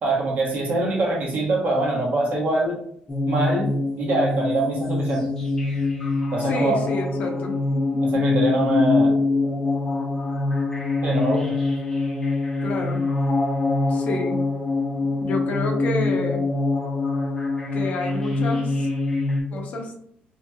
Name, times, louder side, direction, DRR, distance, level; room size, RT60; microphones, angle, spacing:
voice 1, 0.0-2.8 3.3-5.3 6.3-6.8 8.0-9.2 11.0-11.5, right 2 dB, 50° right, -2 dB, 0.9 m, -24 dB
sound 1, 3.1-19.4, left 3 dB, 15° left, 0.7 m, -24 dB
voice 2, 6.4-7.5 12.6-13.1 13.9-14.4 15.2-16.5 17.7-18.9 19.5-19.9, left 2 dB, 55° left, 2 dB, 0.6 m, -29 dB
3.0 x 2.8 x 2.2 m, 0.69 s
cardioid pair, 160°, 3 cm